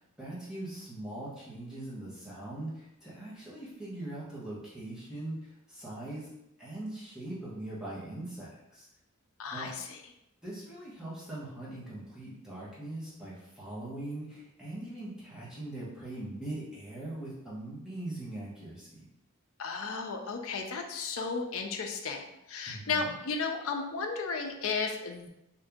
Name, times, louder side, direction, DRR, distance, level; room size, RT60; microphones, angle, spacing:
voice 1, 0.2-5.4 5.7-6.3 6.6-8.9 9.5-9.7 10.4-19.1 22.7-23.1, right 1 dB, 5° right, -9 dB, 1.0 m, -41 dB
voice 2, 9.4-10.0 19.6-25.3, left 4 dB, 70° left, 3 dB, 0.5 m, -34 dB
2.9 x 2.7 x 3.5 m, 0.87 s
head